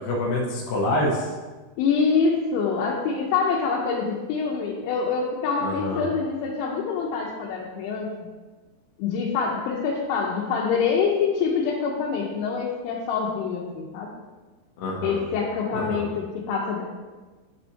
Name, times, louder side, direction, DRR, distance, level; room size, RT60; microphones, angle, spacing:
voice 1, 0.0-1.3 5.6-6.1 14.8-15.2 15.7-16.1, left 1 dB, 70° left, -3 dB, 2.3 m, -26 dB
voice 2, 1.8-8.3 9.0-14.1 15.0-16.8, left 5 dB, 90° left, -2 dB, 3.1 m, -25 dB
11.0 x 4.4 x 2.8 m, 1.3 s
omnidirectional pair, 5.2 m